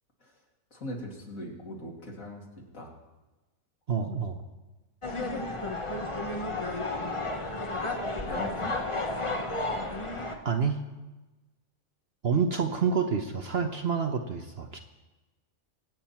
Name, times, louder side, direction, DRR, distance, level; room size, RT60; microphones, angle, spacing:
voice 1, 0.7-2.4 2.7-2.9 8.2-8.7, left 1 dB, 60° left, -2 dB, 3.1 m, -39 dB
voice 2, 3.9-4.4 10.4-10.8 12.2-14.8, right 6 dB, 50° right, 5 dB, 1.0 m, -28 dB
sound 1, 5.0-10.3, left 2 dB, 25° left, 1.0 m, -32 dB
23.5 x 9.2 x 4.4 m, 1.1 s
omnidirectional pair, 1.6 m